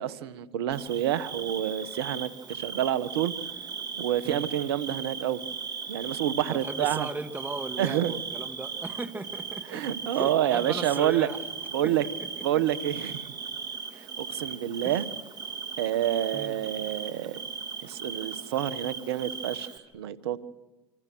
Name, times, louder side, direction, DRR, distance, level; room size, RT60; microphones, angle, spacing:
voice 1, 0.0-3.3 3.9-5.4 5.9-7.1 7.8-8.1 9.7-11.3 11.7-12.0 12.4-13.3 13.9-15.0 15.8-17.4 17.8-20.4, right 11 dB, 80° right, 14 dB, 1.5 m, -28 dB
Bird / Cricket, 0.7-19.8, right 6 dB, 35° right, 3.3 m, -38 dB
voice 2, 6.5-11.4 11.8-12.7 14.8-15.0 16.3-16.6, right 2 dB, 15° right, 7 dB, 2.8 m, -37 dB
28.5 x 26.5 x 6.4 m, 1.1 s
hypercardioid pair, 85°, 13 cm